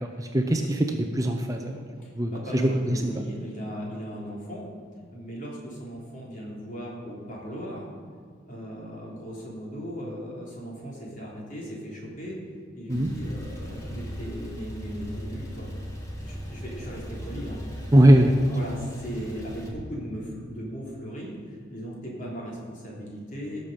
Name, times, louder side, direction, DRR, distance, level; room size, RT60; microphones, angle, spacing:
voice 1, 0.0-1.8 2.2-3.2 12.9-13.1 17.9-18.3, right 1 dB, 15° right, 4 dB, 0.7 m, -21 dB
voice 2, 2.0-4.7 5.1-7.9 8.5-12.4 12.7-17.6 18.0-18.2 18.5-23.6, equal, 40° left, -4 dB, 3.5 m, -37 dB
Male speech man speaking / Car / Idling, 12.9-19.7, equal, 15° left, 1.7 m, -38 dB
17.5 x 6.9 x 5.1 m, 2.1 s
head